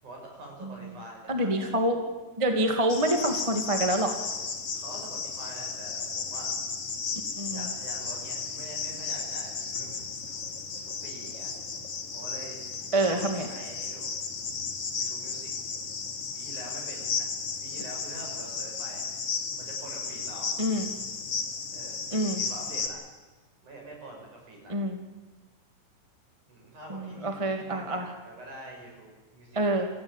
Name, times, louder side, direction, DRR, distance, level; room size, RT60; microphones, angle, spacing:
voice 1, 0.0-1.7 2.5-2.7 4.7-6.5 7.5-10.4 10.8-11.5 12.1-12.6 13.0-14.1 15.0-15.5 16.3-17.3 17.6-19.1 19.6-20.5 21.7-23.0 23.6-24.8 26.5-29.9, right 1 dB, 60° right, 0 dB, 8.0 m, -46 dB
voice 2, 1.3-2.0 2.4-4.2 7.4-7.7 12.9-13.5 20.6-20.9 22.1-22.4 24.7-25.0 26.9-28.1 29.5-29.9, right 1 dB, 15° right, 4 dB, 1.4 m, -27 dB
Cricket, 2.9-22.9, left 5 dB, 45° left, 2.9 m, -34 dB
28.0 x 15.0 x 9.0 m, 1.2 s
omnidirectional pair, 4.1 m